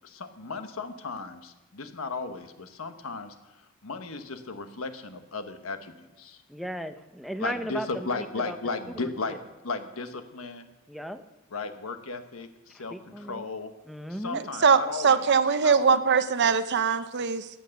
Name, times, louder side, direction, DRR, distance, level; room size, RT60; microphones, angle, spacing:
voice 1, 0.0-3.3 3.8-6.4 7.4-10.7 11.5-13.7 14.1-15.2 15.6-15.9, left 3 dB, 90° left, 8 dB, 1.2 m, -35 dB
voice 2, 6.5-8.6 8.9-9.1 10.9-11.2 12.9-13.4 13.9-14.4, equal, ahead, 8 dB, 0.6 m, -36 dB
voice 3, 14.3-17.5, right 6 dB, 55° right, 12 dB, 0.7 m, -22 dB
14.5 x 9.3 x 6.5 m, 1.0 s
head